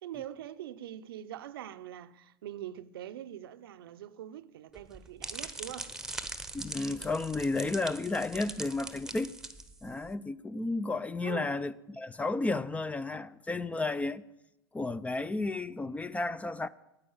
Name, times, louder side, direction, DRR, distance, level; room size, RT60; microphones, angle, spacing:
voice 1, 0.0-6.0 11.2-11.6, right 11 dB, 80° right, 0.6 m, -43 dB
sound 1, 4.7-10.1, right 2 dB, 5° right, 1.0 m, -42 dB
voice 2, 6.5-9.3 9.8-14.2 14.7-16.7, left 3 dB, 10° left, 0.4 m, -32 dB
9.3 x 8.8 x 8.7 m
hypercardioid pair, 100°, 12 cm